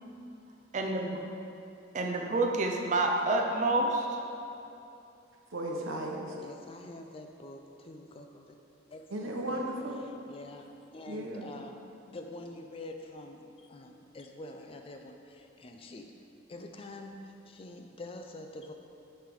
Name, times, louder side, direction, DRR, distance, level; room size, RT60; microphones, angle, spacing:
voice 1, 0.7-1.2 1.9-4.2, right 2 dB, 35° right, 1 dB, 0.5 m, -28 dB
voice 2, 5.5-6.3 9.1-10.0 11.1-11.5, right 1 dB, 80° right, 0 dB, 0.9 m, -35 dB
voice 3, 6.4-8.5 8.9-9.6 10.3-11.8 12.1-16.1 16.5-18.7, left 2 dB, 25° left, 4 dB, 0.3 m, -46 dB
7.5 x 3.3 x 5.3 m, 2.8 s
head